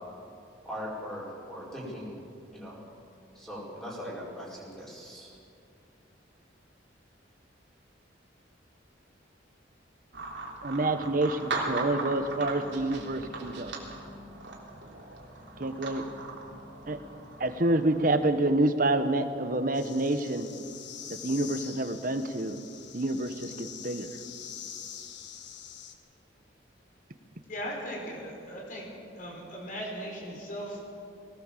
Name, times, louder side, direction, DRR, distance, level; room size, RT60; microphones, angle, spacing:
voice 1, 0.6-2.2 2.5-2.8 3.3-5.3, equal, 5° left, -7 dB, 5.1 m, -40 dB
sound 1, 10.1-18.0, right 2 dB, 65° right, 3.5 m, -38 dB
voice 2, 10.6-13.8 15.6-16.2 16.9-17.0 17.4-20.5 21.2-22.6 22.9-24.1, right 2 dB, 45° right, 9 dB, 1.2 m, -28 dB
sound 2, 19.7-25.9, left 8 dB, 65° left, 1.6 m, -44 dB
voice 3, 27.5-28.9 29.2-30.8, equal, 45° left, -2 dB, 5.2 m, -38 dB
20.5 x 18.5 x 7.5 m, 2.5 s
head